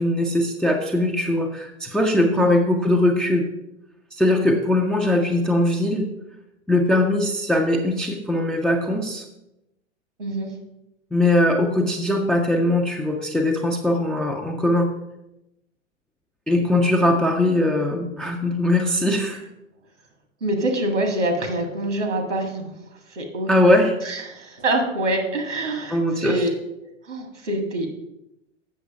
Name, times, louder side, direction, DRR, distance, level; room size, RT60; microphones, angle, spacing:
voice 1, 0.0-3.5 4.1-6.1 6.7-9.2 11.1-14.9 16.5-19.4 23.5-23.9 25.9-26.4, left 1 dB, ahead, 1 dB, 0.3 m, -20 dB
voice 2, 20.4-22.7 23.1-23.6 24.0-26.5 27.1-27.9, right 1 dB, 75° right, 4 dB, 1.8 m, -25 dB
7.5 x 6.5 x 4.8 m, 0.90 s
figure-of-eight pair, 90°, 36 cm